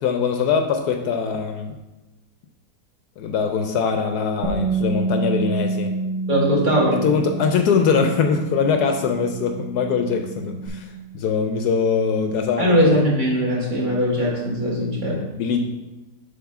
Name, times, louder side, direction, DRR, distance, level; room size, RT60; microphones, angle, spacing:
voice 1, 0.0-1.8 3.2-5.9 6.9-12.7 15.1-15.6, left 5 dB, 75° left, 5 dB, 1.1 m, -22 dB
Bass guitar, 4.4-10.7, right 3 dB, 85° right, 2.1 m, -28 dB
voice 2, 6.3-7.0 12.6-15.2, equal, 30° right, -5 dB, 2.1 m, -20 dB
7.4 x 3.5 x 5.9 m, 1.0 s
omnidirectional pair, 1.8 m